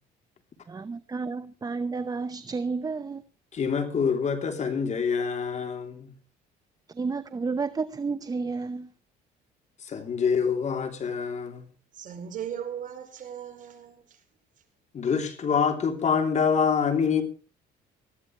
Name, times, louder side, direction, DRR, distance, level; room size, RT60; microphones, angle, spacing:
voice 1, 0.7-3.2 6.9-8.9, right 4 dB, 20° right, 0.8 m, -31 dB
voice 2, 3.5-6.1 9.8-11.7 14.9-17.2, left 6 dB, 45° left, 3.2 m, -26 dB
voice 3, 11.9-14.0, right 9 dB, 50° right, 4.9 m, -37 dB
20.0 x 14.5 x 3.2 m
cardioid pair, 110°, 17 cm